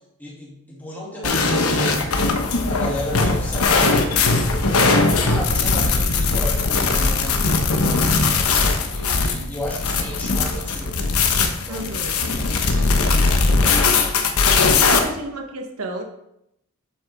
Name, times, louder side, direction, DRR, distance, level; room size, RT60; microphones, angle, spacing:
voice 1, 0.2-2.3 2.7-7.8 8.9-11.0 11.7-11.9 12.2-13.9 14.9-15.0, left 1 dB, 10° left, -5 dB, 2.4 m, -33 dB
sound 1, 1.2-15.0, left 3 dB, 80° left, 1.0 m, -19 dB
voice 2, 11.7-12.2 14.7-16.0, right 2 dB, 75° right, 3 dB, 1.1 m, -31 dB
8.9 x 7.3 x 3.5 m, 0.80 s
head